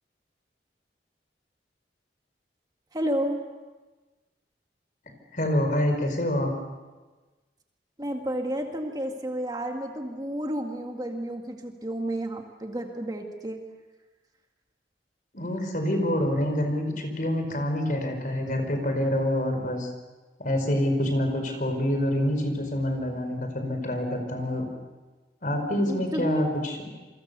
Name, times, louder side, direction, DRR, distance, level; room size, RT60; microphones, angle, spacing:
voice 1, 2.9-3.4 8.0-13.6 25.9-26.5, equal, 20° right, 3 dB, 2.0 m, -31 dB
voice 2, 5.3-6.5 15.3-19.9 20.4-24.7 25.4-26.8, left 1 dB, 50° left, 5 dB, 5.0 m, -26 dB
28.0 x 24.0 x 6.9 m, 1.3 s
head